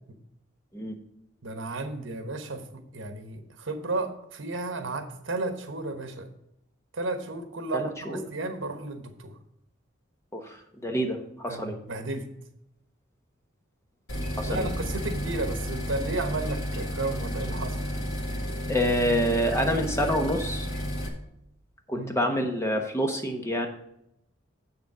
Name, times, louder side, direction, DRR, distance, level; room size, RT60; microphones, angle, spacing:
voice 1, 1.4-6.3 6.9-9.3 11.5-12.2 14.5-17.8 21.9-22.1, right 2 dB, 75° right, 7 dB, 1.2 m, -33 dB
voice 2, 7.7-8.2 10.3-11.8 14.4-14.7 18.7-20.7 21.9-23.7, equal, 15° left, 3 dB, 1.0 m, -27 dB
sound 1, 14.1-21.1, equal, 75° left, 2.3 m, -32 dB
7.7 x 7.0 x 4.9 m, 0.80 s
head